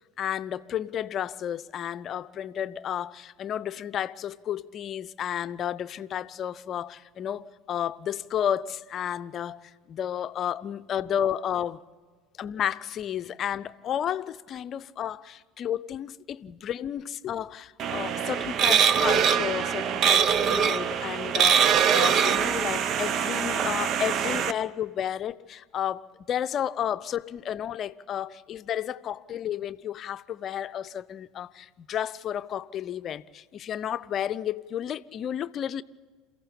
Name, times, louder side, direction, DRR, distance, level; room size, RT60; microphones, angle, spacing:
voice 1, 0.2-11.8 12.4-35.8, left 10 dB, 40° left, 0.6 m, -32 dB
sound 1, 17.8-24.5, right 8 dB, 45° right, 0.8 m, -23 dB
28.5 x 15.5 x 8.4 m
figure-of-eight pair, 70°, 0 cm